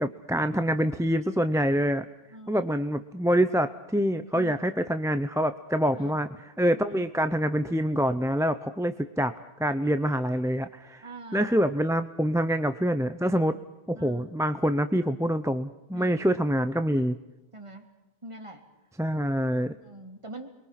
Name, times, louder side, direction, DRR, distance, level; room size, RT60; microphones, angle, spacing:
voice 1, 0.0-2.1 2.5-6.3 6.6-9.3 9.6-11.0 11.3-13.6 13.9-17.2 19.0-19.7, equal, 5° right, 9 dB, 0.6 m, -26 dB
voice 2, 2.3-2.8 4.3-4.7 5.9-6.2 6.8-7.1 11.0-11.7 13.9-14.3 15.9-16.2 17.5-17.9 18.2-18.6 19.8-20.5, right 2 dB, 30° right, 3 dB, 2.9 m, -44 dB
28.5 x 22.5 x 5.9 m, 0.98 s
omnidirectional pair, 1.1 m